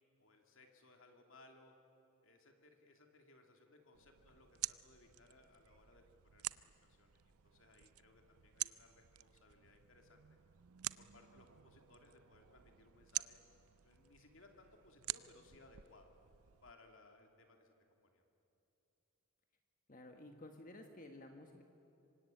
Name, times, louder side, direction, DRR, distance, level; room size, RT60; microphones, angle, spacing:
voice 1, 0.2-1.8 2.2-10.2 10.9-13.4 13.8-16.1 16.6-17.7 18.0-18.2, left 2 dB, 60° left, 3 dB, 2.8 m, -64 dB
sound 1, 3.9-16.7, right 15 dB, 85° right, 0.6 m, -48 dB
voice 2, 19.9-21.6, left 1 dB, 40° left, 4 dB, 1.5 m, -54 dB
26.5 x 24.5 x 9.2 m, 3.0 s
head